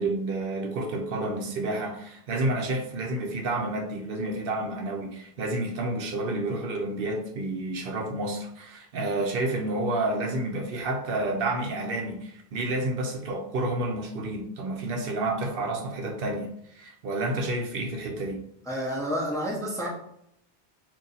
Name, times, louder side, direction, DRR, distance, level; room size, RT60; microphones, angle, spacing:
voice 1, 0.0-18.4, right 2 dB, 70° right, 3 dB, 0.7 m, -30 dB
voice 2, 18.7-19.9, equal, 5° left, -3 dB, 0.6 m, -29 dB
2.7 x 2.6 x 3.8 m, 0.75 s
omnidirectional pair, 1.0 m